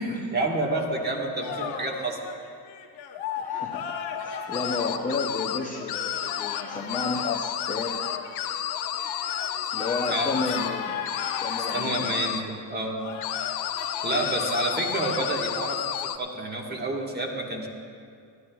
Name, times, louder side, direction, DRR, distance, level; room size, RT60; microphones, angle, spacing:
voice 1, 0.0-2.2 10.1-10.3 11.7-13.0 14.0-17.7, right 2 dB, 20° right, 0 dB, 1.5 m, -29 dB
sound 1, 1.4-15.5, left 7 dB, 85° left, 1.1 m, -37 dB
voice 2, 3.4-8.1 9.7-11.0 11.4-12.2, left 3 dB, 20° left, -1 dB, 0.6 m, -32 dB
sound 2, 4.5-5.6 5.9-6.6 6.9-10.7 11.0-12.4 13.2-16.2, left 11 dB, 60° left, 0.6 m, -31 dB
21.0 x 13.5 x 2.3 m, 2.3 s
cardioid pair, 150°, 46 cm